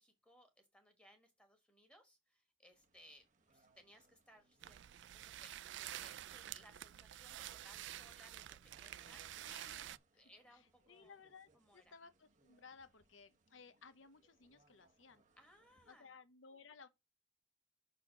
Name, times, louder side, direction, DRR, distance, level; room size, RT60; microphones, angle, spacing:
voice 1, 0.0-9.5 10.1-11.2 11.5-11.9 15.4-16.1, equal, 5° left, 1.5 m, -65 dB
sound 1, 2.7-16.0, right 2 dB, 40° right, 0.9 m, -75 dB
sound 2, 4.6-10.0, right 12 dB, 65° right, 0.3 m, -49 dB
voice 2, 9.4-10.2 10.5-10.6 10.9-15.2 15.9-16.9, left 5 dB, 80° left, 0.8 m, -60 dB
6.4 x 4.3 x 5.9 m
head